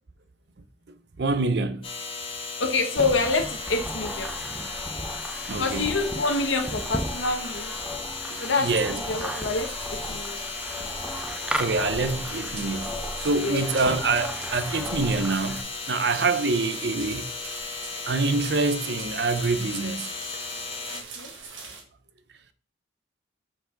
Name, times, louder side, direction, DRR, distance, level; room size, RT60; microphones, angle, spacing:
voice 1, 1.2-1.8 5.5-5.9 8.3-9.0 11.6-12.9 13.2-17.3 18.1-20.1, right 3 dB, 60° right, 0.6 m, -26 dB
sound 1, 1.8-21.0, left 4 dB, 30° left, 1.2 m, -36 dB
voice 2, 2.6-4.4 5.6-7.7 8.4-10.5 13.4-13.7 20.9-21.3, left 3 dB, 80° left, 1.1 m, -27 dB
sound 2, 3.0-15.6, equal, 5° right, 0.4 m, -35 dB
sound 3, 9.2-21.8, right 4 dB, 90° right, 1.7 m, -44 dB
6.1 x 4.8 x 3.9 m
head